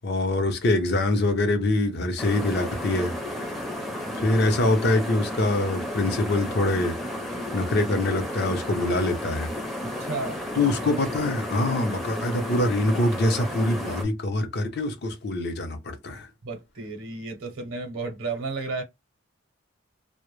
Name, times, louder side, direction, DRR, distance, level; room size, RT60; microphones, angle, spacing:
voice 1, 0.0-3.1 4.1-7.0 7.5-9.5 10.5-16.3, left 2 dB, 50° left, 0.6 m, -24 dB
sound 1, 2.2-14.0, left 1 dB, ahead, 0.5 m, -33 dB
voice 2, 9.8-10.4 16.4-18.8, right 3 dB, 70° right, 0.7 m, -33 dB
2.1 x 2.0 x 3.0 m
head